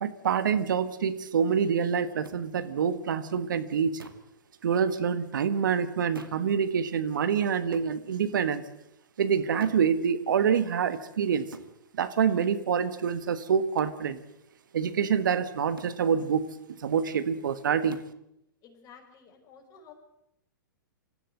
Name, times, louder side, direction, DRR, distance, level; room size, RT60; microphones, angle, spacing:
voice 1, 0.0-4.0 4.6-8.6 9.2-11.5 12.0-14.2 14.7-16.4 16.8-18.0, right 7 dB, 70° right, 12 dB, 1.5 m, -26 dB
sound 1, 2.2-2.4 4.0-4.3 6.1-6.5 7.7-7.9 9.6-9.9 11.5-11.7 13.8-14.0 15.8-16.0 17.9-18.2, right 4 dB, 90° right, 2.1 m, -46 dB
voice 2, 18.6-19.9, left 6 dB, 30° left, 3 dB, 5.6 m, -52 dB
26.0 x 15.0 x 7.9 m, 0.81 s
hypercardioid pair, 110°, 11 cm